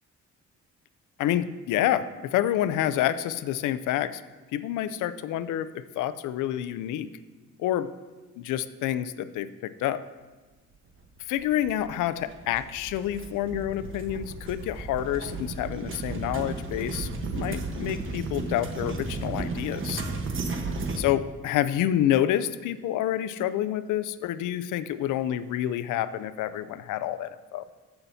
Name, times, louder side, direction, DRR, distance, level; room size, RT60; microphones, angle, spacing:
voice 1, 1.2-4.2 4.5-7.1 7.6-7.9 8.4-10.0 11.3-20.0 21.0-27.6, left 12 dB, 85° left, 14 dB, 0.5 m, -28 dB
wagon arives altered, 11.4-21.0, right 3 dB, 40° right, 1.2 m, -34 dB
14.5 x 5.7 x 2.7 m, 1.3 s
cardioid pair, 90°, 30 cm